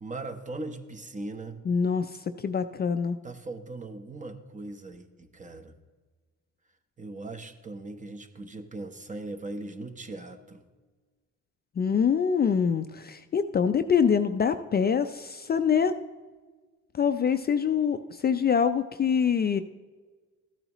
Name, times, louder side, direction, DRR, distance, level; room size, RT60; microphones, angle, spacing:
voice 1, 0.0-1.6 3.2-5.7 7.0-10.6, right 2 dB, 25° right, 6 dB, 0.9 m, -39 dB
voice 2, 1.7-3.2 11.8-16.0 16.9-19.6, left 7 dB, 35° left, 9 dB, 0.4 m, -25 dB
14.0 x 8.9 x 3.0 m, 1.4 s
cardioid pair, 90°, 30 cm